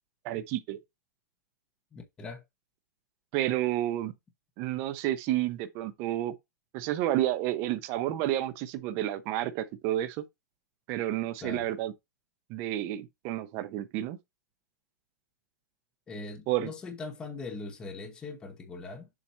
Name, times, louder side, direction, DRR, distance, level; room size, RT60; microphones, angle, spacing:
voice 1, 0.2-0.8 3.3-4.1 4.6-6.3 6.7-10.2 10.9-11.9 12.5-14.2 16.5-16.7, right 13 dB, 25° right, 0.6 m, -30 dB
voice 2, 1.9-2.4 11.4-11.6 16.1-19.1, left 3 dB, 10° left, 0.9 m, -41 dB
7.2 x 2.9 x 5.5 m
hypercardioid pair, 170°, 10 cm